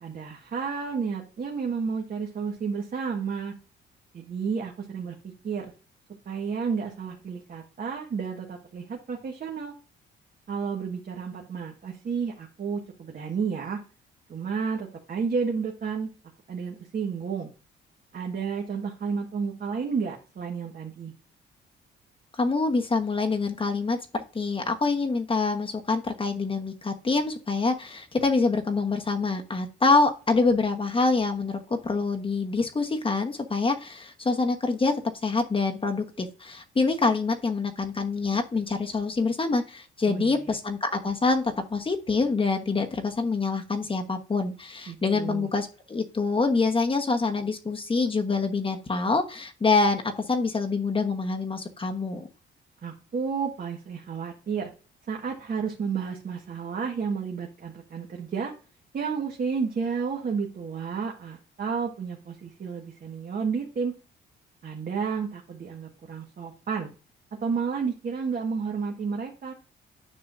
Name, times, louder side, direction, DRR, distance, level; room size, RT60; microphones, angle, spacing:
voice 1, 0.0-3.5 4.1-5.7 6.2-9.7 10.5-13.8 14.3-16.1 16.5-17.5 18.1-21.1 40.1-40.4 44.9-45.5 52.8-54.7 55.1-58.5 58.9-63.9 64.6-66.9 67.4-69.5, right 5 dB, 45° right, 1 dB, 1.6 m, -31 dB
voice 2, 22.4-52.3, left 3 dB, 25° left, 4 dB, 1.2 m, -26 dB
9.9 x 5.9 x 2.6 m, 0.34 s
cardioid pair, 90°, 20 cm